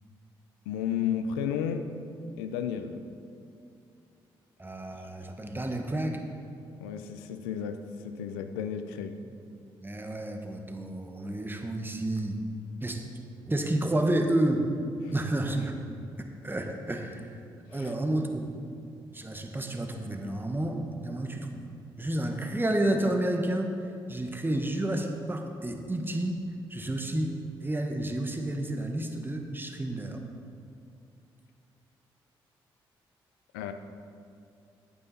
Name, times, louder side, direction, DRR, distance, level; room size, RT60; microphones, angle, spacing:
voice 1, 0.7-1.9 2.4-3.0 6.7-9.2 17.6-17.9 33.5-33.7, left 8 dB, 90° left, 8 dB, 0.5 m, -33 dB
voice 2, 4.6-6.2 9.2-9.3 9.8-12.4 12.8-13.0 13.5-14.7 15.1-15.8 16.4-17.3 17.7-18.5 19.1-21.6 22.0-23.7 24.1-26.4 26.7-27.3 27.6-30.2, right 1 dB, 20° right, 3 dB, 1.5 m, -30 dB
10.5 x 8.8 x 4.2 m, 2.5 s
hypercardioid pair, 40°, 12 cm